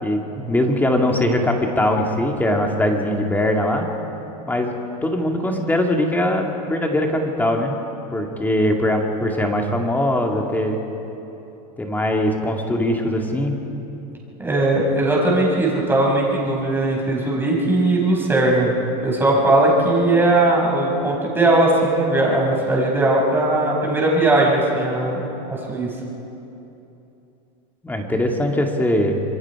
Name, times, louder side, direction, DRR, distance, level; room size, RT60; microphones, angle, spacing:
voice 1, 0.0-3.9 4.5-4.7 5.0-7.8 8.1-10.8 11.8-13.5 27.8-29.2, left 1 dB, 10° left, 2 dB, 2.2 m, -21 dB
voice 2, 14.4-18.7 19.0-25.9, right 2 dB, 10° right, -3 dB, 5.5 m, -19 dB
27.0 x 22.5 x 4.9 m, 3.0 s
supercardioid pair, 135°, 21 cm